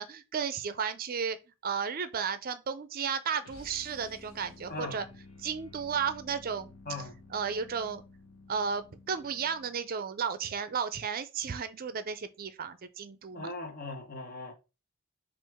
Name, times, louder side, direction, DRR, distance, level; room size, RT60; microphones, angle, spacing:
voice 1, 0.0-1.4 1.6-5.1 5.4-6.7 7.3-8.0 8.5-13.5, right 6 dB, 45° right, 0.5 m, -33 dB
sound 1, 3.4-9.9, left 2 dB, 75° left, 0.9 m, -53 dB
voice 2, 4.7-5.0 6.9-7.2 13.3-14.5, left 2 dB, 45° left, 1.0 m, -39 dB
6.1 x 2.5 x 3.5 m
head